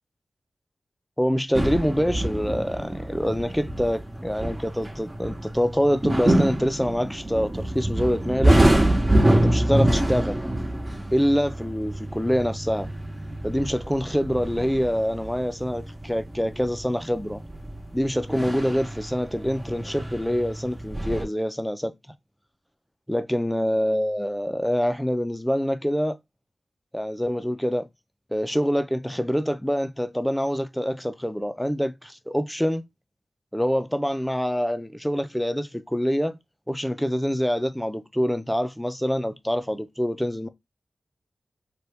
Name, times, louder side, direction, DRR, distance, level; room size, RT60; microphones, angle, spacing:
voice 1, 1.2-8.6 9.3-10.4 11.1-12.9 13.4-17.4 17.9-21.9 23.1-26.2 26.9-27.9 28.3-32.8 33.5-36.4 36.7-40.5, equal, 5° left, 0.5 m, -25 dB
sound 1, 1.5-21.2, right 1 dB, 30° right, 1.0 m, -26 dB
2.8 x 2.3 x 3.4 m
cardioid pair, 45°, 0 cm